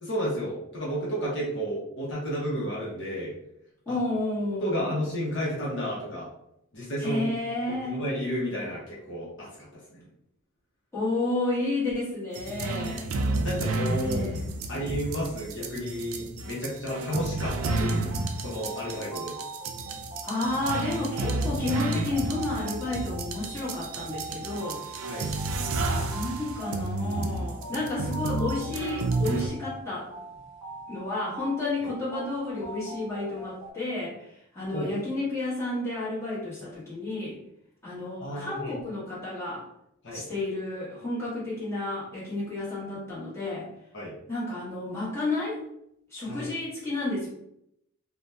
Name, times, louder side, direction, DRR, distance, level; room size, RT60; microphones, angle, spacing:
voice 1, 0.0-3.3 3.9-4.0 4.6-6.3 6.7-7.3 7.7-10.1 13.4-14.2 14.7-18.1 18.4-19.3 25.1-25.3 31.8-31.9 34.7-34.9 38.2-38.8 40.0-40.2 43.9-44.1 46.3-46.5, equal, 55° left, -6 dB, 0.8 m, -32 dB
voice 2, 3.9-4.8 7.0-8.0 10.9-13.1 14.0-14.4 18.8-19.0 20.2-25.3 26.1-30.1 30.9-37.4 37.8-39.6 40.1-43.7 44.3-45.6 46.1-47.3, left 2 dB, 10° left, -9 dB, 1.1 m, -31 dB
sound 1, 12.3-29.5, right 2 dB, 70° right, 0.4 m, -31 dB
sound 2, 17.1-33.7, right 3 dB, 20° right, 0.8 m, -42 dB
2.7 x 2.2 x 3.3 m, 0.78 s
head